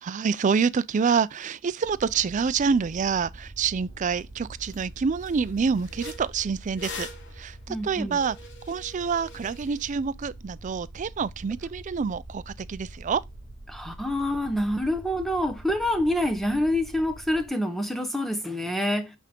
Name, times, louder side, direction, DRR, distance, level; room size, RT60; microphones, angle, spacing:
voice 1, 0.0-7.1 7.4-7.6 7.8-8.4 8.7-13.2, right 5 dB, 35° right, 0.3 m, -27 dB
sound 1, 1.9-17.5, right 1 dB, 30° left, 1.7 m, -45 dB
sound 2, 4.2-4.3 4.6-4.8 5.2-9.9, left 3 dB, 50° left, 1.3 m, -43 dB
voice 2, 7.7-8.2 13.7-19.1, left 1 dB, ahead, 0.9 m, -27 dB
8.4 x 3.5 x 3.6 m
head